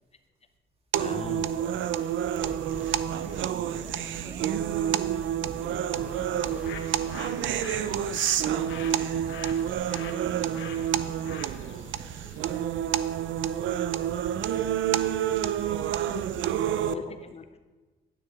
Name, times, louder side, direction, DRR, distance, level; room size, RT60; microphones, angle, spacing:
sound 1, 0.9-16.9, right 10 dB, 75° right, 0.5 m, -28 dB
voice 1, 1.0-1.7 16.8-17.6, left 6 dB, 30° left, 9 dB, 0.5 m, -40 dB
voice 2, 2.0-9.0 9.9-14.7, right 1 dB, 30° right, 0 dB, 2.3 m, -51 dB
sound 2, 2.4-9.7, right 1 dB, 5° right, 0.9 m, -45 dB
Bird, 6.3-12.5, left 6 dB, 80° left, 1.3 m, -44 dB
9.9 x 8.9 x 4.7 m, 1.3 s
cardioid pair, 90°, 20 cm